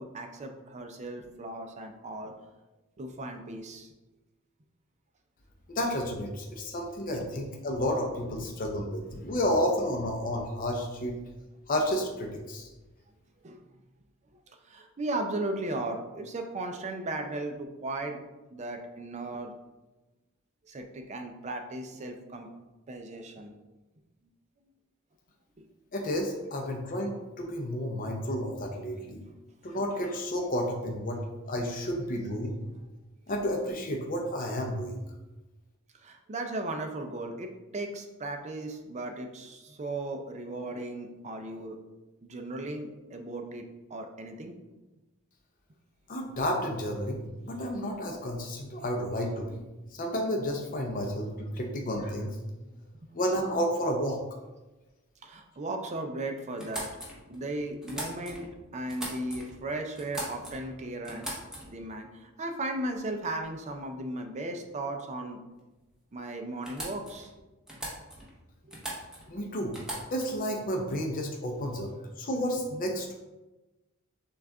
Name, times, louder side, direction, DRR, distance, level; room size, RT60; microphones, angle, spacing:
voice 1, 0.0-2.3 3.0-3.9 8.4-8.5 13.4-13.6 14.5-18.2 18.5-19.5 20.7-22.5 22.9-23.5 25.6-25.7 29.3-29.4 36.0-41.8 42.2-44.5 55.2-56.9 57.3-61.3 61.6-65.4 66.1-67.5 68.7-69.0, right 2 dB, 35° right, 4 dB, 0.5 m, -36 dB
voice 2, 5.7-11.1 11.7-12.7 25.9-29.2 29.6-32.6 33.3-35.0 46.1-49.6 49.9-52.4 53.1-54.2 69.3-69.8 70.1-73.2, equal, 40° left, 1 dB, 0.5 m, -31 dB
sound 1, 56.6-58.5 58.9-59.6 59.9-60.7 61.0-61.9 62.9-63.1 63.4-63.8 65.8-65.9 66.1-66.2 66.6-67.3 67.7-68.4 68.7-69.3 69.7-70.4, right 1 dB, 5° right, 0.9 m, -40 dB
6.2 x 2.4 x 3.4 m, 1.1 s
head